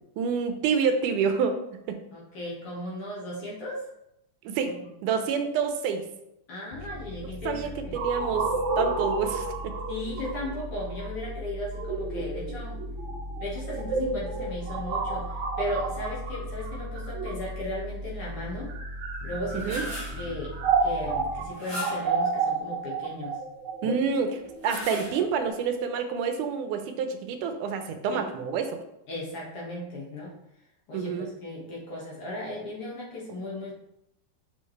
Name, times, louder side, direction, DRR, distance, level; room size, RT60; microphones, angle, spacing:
voice 1, 0.2-1.6 1.9-2.0 4.4-4.8 5.0-6.0 7.5-8.5 8.8-9.7 19.7-19.8 23.8-28.7 30.9-31.3, right 6 dB, 85° right, 6 dB, 2.2 m, -28 dB
voice 2, 2.1-3.8 4.8-4.9 6.5-8.0 9.9-12.8 13.4-18.7 19.2-19.7 20.2-20.5 20.8-23.4 23.8-24.0 28.1-28.2 29.1-30.3 30.9-33.7, left 1 dB, 50° left, -5 dB, 2.4 m, -36 dB
sound 1, 6.7-21.5, left 1 dB, 90° left, 2.4 m, -38 dB
sound 2, 8.0-17.8 18.5-25.5, right 4 dB, 70° right, 2.6 m, -31 dB
sound 3, 19.3-20.3 21.5-22.2 24.4-25.5, left 1 dB, 10° left, 1.6 m, -38 dB
7.6 x 5.4 x 3.3 m, 0.82 s
omnidirectional pair, 3.6 m